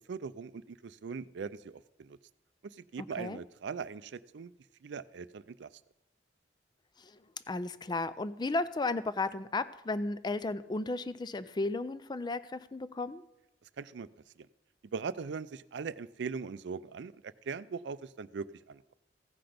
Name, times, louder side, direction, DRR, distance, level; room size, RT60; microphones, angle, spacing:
voice 1, 0.1-2.2 2.6-4.5 4.8-5.7 13.8-14.1 14.4-14.5 14.9-18.8, right 5 dB, 70° right, 16 dB, 0.4 m, -40 dB
voice 2, 7.5-13.2, left 2 dB, 25° left, 15 dB, 0.4 m, -34 dB
15.5 x 5.9 x 5.1 m, 0.93 s
head